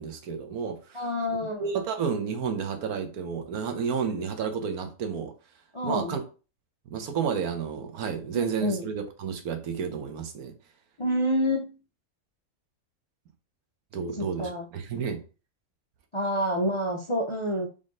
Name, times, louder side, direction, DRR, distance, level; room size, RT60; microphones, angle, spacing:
voice 1, 0.0-1.0 1.6-5.3 5.8-6.2 6.9-10.5 13.9-15.2, right 6 dB, 90° right, 1.4 m, -31 dB
voice 2, 0.9-1.6 5.7-6.2 8.3-8.8 11.0-11.7 14.1-14.7 16.1-17.7, equal, 40° left, 0.4 m, -28 dB
3.8 x 3.6 x 3.8 m
omnidirectional pair, 1.5 m